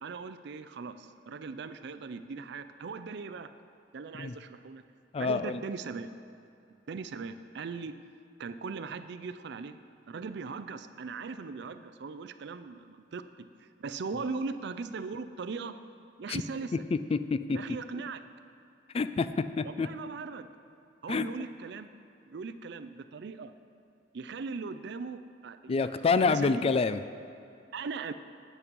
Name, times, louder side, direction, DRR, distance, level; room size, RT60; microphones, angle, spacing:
voice 1, 0.0-3.5 3.9-4.8 5.2-6.1 6.9-8.0 8.4-9.8 10.1-15.8 16.2-16.8 17.5-18.2 19.6-20.5 21.0-21.9 22.3-23.5 24.1-25.9 26.2-26.7 27.7-28.1, right 4 dB, 65° right, 11 dB, 0.4 m, -39 dB
voice 2, 5.1-5.6 16.3-16.4 17.1-17.6 18.9-19.9 21.1-21.3 25.7-27.0, left 4 dB, 30° left, 12 dB, 0.3 m, -27 dB
8.6 x 8.4 x 5.3 m, 2.6 s
head